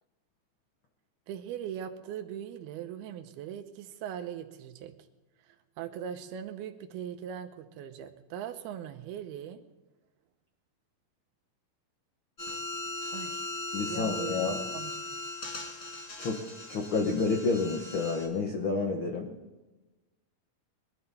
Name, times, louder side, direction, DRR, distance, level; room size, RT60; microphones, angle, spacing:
voice 1, 1.3-4.9 5.5-9.6 13.1-13.5 13.9-15.0, right 9 dB, 85° right, 7 dB, 2.9 m, -40 dB
sound 1, 12.4-18.3, left 2 dB, 50° left, 0.7 m, -38 dB
voice 2, 13.7-14.6 16.2-16.4 16.7-19.3, left 4 dB, 80° left, 2 dB, 1.1 m, -29 dB
22.0 x 12.5 x 4.2 m, 1.1 s
omnidirectional pair, 4.4 m